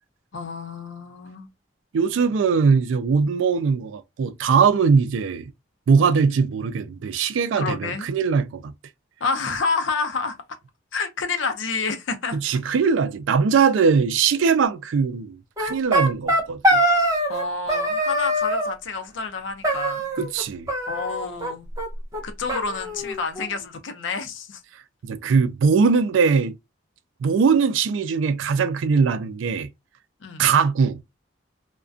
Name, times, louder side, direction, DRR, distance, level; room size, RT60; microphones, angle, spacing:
voice 1, 0.3-1.5 7.6-8.1 9.2-10.4 10.9-12.4 17.3-20.1 20.9-21.7 22.2-24.6 30.2-30.5, left 4 dB, 80° left, 0.5 m, -29 dB
voice 2, 1.9-5.5 5.9-8.7 12.3-16.8 20.2-20.7 25.0-26.5 27.2-29.7 30.4-31.0, right 5 dB, 85° right, 0.3 m, -21 dB
sound 1, 15.6-17.4 17.7-18.7 19.6-20.4 20.7-21.5 21.8-21.9 22.1-22.2 22.5-23.5, equal, 20° right, 0.6 m, -23 dB
2.3 x 2.2 x 2.5 m
head